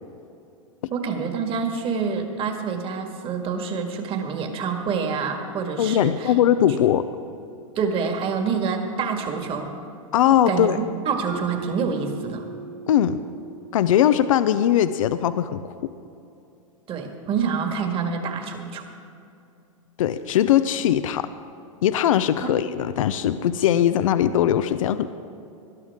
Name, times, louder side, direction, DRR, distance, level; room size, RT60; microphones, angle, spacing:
voice 1, 0.9-6.3 7.8-9.7 10.5-12.5 16.9-18.9 22.4-22.5, right 5 dB, 30° right, 4 dB, 1.9 m, -27 dB
voice 2, 5.8-7.0 10.1-10.8 12.9-13.2 13.7-15.6 20.0-21.3 21.8-25.1, left 10 dB, 75° left, 12 dB, 0.5 m, -20 dB
Mallet percussion, 11.3-15.3, right 6 dB, 75° right, 1.1 m, -40 dB
19.0 x 12.0 x 3.6 m, 2.7 s
hypercardioid pair, 115°, 17 cm